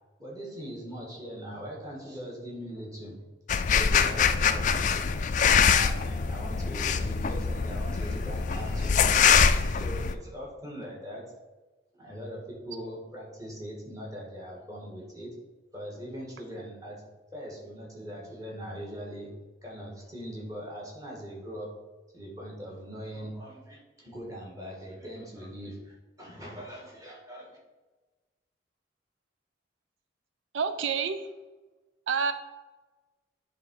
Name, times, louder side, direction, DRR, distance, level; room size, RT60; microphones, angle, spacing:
voice 1, 0.2-3.2 3.7-5.1 5.4-9.3 9.6-11.3 11.9-15.3 15.7-17.0 17.3-19.3 19.6-21.7 22.1-27.6, equal, 20° right, -3 dB, 1.6 m, -41 dB
sound 1, 3.5-10.1, left 6 dB, 40° left, 0.3 m, -24 dB
voice 2, 30.5-31.3 32.1-32.3, right 6 dB, 90° right, 10 dB, 0.4 m, -28 dB
8.6 x 3.6 x 4.6 m, 1.2 s
head